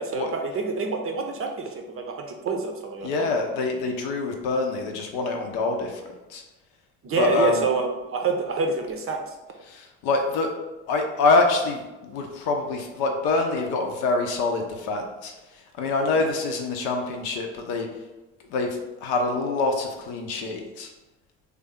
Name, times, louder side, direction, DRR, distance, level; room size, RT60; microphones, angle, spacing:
voice 1, 0.0-3.3 7.0-9.3, right 4 dB, 35° right, 3 dB, 0.6 m, -27 dB
voice 2, 3.0-6.0 6.3-6.4 7.2-7.6 9.6-10.5 10.9-17.9 18.5-20.9, left 3 dB, 60° left, 3 dB, 0.7 m, -25 dB
3.3 x 2.3 x 3.6 m, 1.1 s
hypercardioid pair, 60°, 40 cm